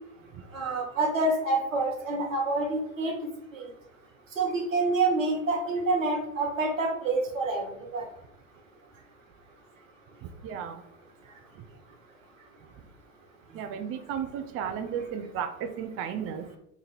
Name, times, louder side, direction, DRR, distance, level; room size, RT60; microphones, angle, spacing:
voice 1, 0.5-3.1 3.5-3.7 4.4-8.1, right 2 dB, 90° right, 0 dB, 1.0 m, -27 dB
voice 2, 10.4-10.8 13.5-16.6, right 8 dB, 35° right, 7 dB, 0.5 m, -34 dB
2.9 x 2.6 x 3.9 m, 0.79 s
hypercardioid pair, 75°, 38 cm